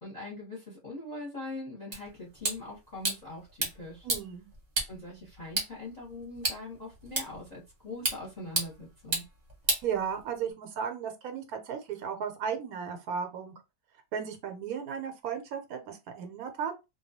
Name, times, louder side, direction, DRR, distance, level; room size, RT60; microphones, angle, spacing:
voice 1, 0.0-4.1 4.9-9.2, left 2 dB, 35° left, 0.9 m, -42 dB
sound 1, 1.9-10.5, right 2 dB, 35° right, 0.8 m, -35 dB
voice 2, 4.0-4.5 9.8-13.5 14.1-16.9, right 7 dB, 75° right, 1.0 m, -35 dB
2.3 x 2.2 x 2.7 m
omnidirectional pair, 1.6 m